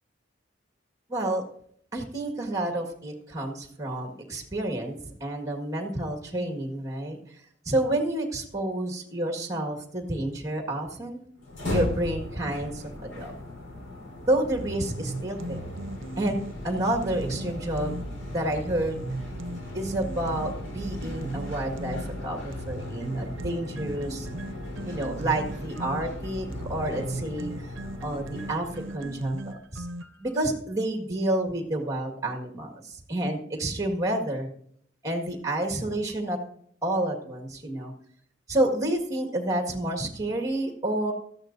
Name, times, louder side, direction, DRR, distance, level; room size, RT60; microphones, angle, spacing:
voice 1, 1.1-1.4 1.9-7.3 7.6-11.2 11.7-13.3 14.3-15.7 16.2-18.0 18.3-19.0 19.7-24.3 24.8-27.7 28.0-29.9 30.2-34.5 35.0-36.4 36.8-37.9 38.5-41.1, right 1 dB, 15° right, 3 dB, 1.8 m, -29 dB
sound 1, 11.4-29.5, left 1 dB, 80° left, 4.3 m, -37 dB
sound 2, 14.5-18.1 18.5-22.1 22.5-30.3, right 2 dB, 80° right, 0.7 m, -38 dB
17.5 x 13.0 x 2.7 m, 0.65 s
head